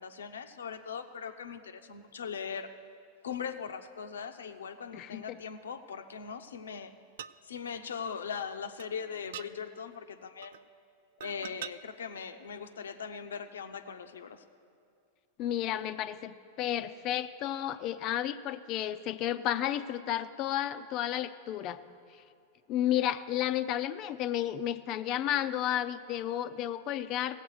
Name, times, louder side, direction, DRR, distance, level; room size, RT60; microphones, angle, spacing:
voice 1, 0.0-2.7 3.2-6.9 7.4-10.5 11.2-14.4, left 6 dB, 85° left, 8 dB, 0.7 m, -40 dB
voice 2, 4.9-5.4 15.4-21.8 22.7-27.4, left 11 dB, 45° left, 12 dB, 0.5 m, -32 dB
sound 1, 7.2-7.4 8.3-8.4 8.8-8.9 9.3-9.5 10.4-10.6 11.2-11.7 12.7-12.8, right 10 dB, 70° right, 0.3 m, -43 dB
16.5 x 8.0 x 6.4 m, 2.4 s
hypercardioid pair, 105°, 0 cm